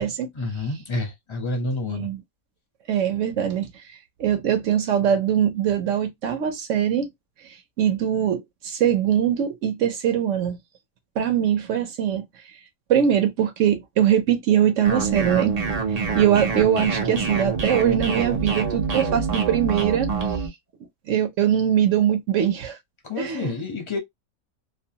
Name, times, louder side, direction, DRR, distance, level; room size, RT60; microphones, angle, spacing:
voice 1, 0.3-2.1 23.0-24.0, left 2 dB, 30° left, 0.5 m, -29 dB
voice 2, 1.9-2.2 2.9-3.7 4.2-7.1 7.4-10.6 11.2-12.3 12.9-15.6 15.9-20.5 21.1-22.8 23.2-23.5, right 9 dB, 65° right, 0.9 m, -22 dB
sound 1, 14.8-20.5, right 4 dB, 50° right, 0.5 m, -26 dB
2.6 x 2.2 x 2.7 m
omnidirectional pair, 1.6 m